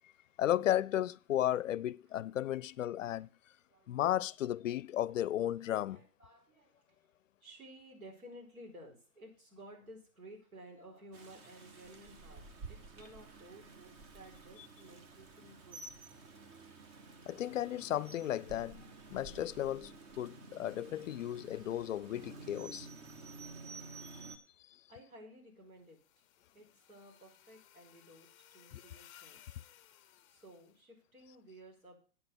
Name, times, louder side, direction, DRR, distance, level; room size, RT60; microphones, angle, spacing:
voice 1, 0.4-3.3 3.9-6.0 17.3-19.9 20.2-22.9 28.7-28.8, left 12 dB, 65° left, 0.5 m, -34 dB
voice 2, 3.7-4.0 5.9-6.8 7.4-15.8 24.9-26.0 26.5-29.4 30.3-32.0, right 1 dB, 85° right, 4.7 m, -55 dB
Rain, 11.1-24.4, right 3 dB, 20° right, 0.8 m, -51 dB
sound 1, 25.8-30.8, left 12 dB, 25° left, 0.6 m, -61 dB
8.6 x 6.8 x 6.8 m
hypercardioid pair, 130°, 42 cm